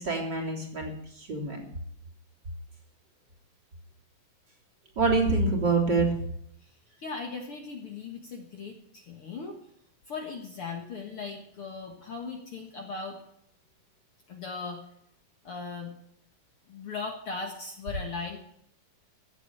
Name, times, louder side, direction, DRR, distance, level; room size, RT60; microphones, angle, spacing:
voice 1, 0.0-1.6 5.0-6.1, right 3 dB, 30° right, -1 dB, 3.6 m, -26 dB
voice 2, 7.0-9.6 10.1-13.2 14.3-14.8 15.4-15.9 16.7-18.4, left 4 dB, 50° left, 3 dB, 1.9 m, -38 dB
15.0 x 8.0 x 8.9 m, 0.73 s
omnidirectional pair, 4.0 m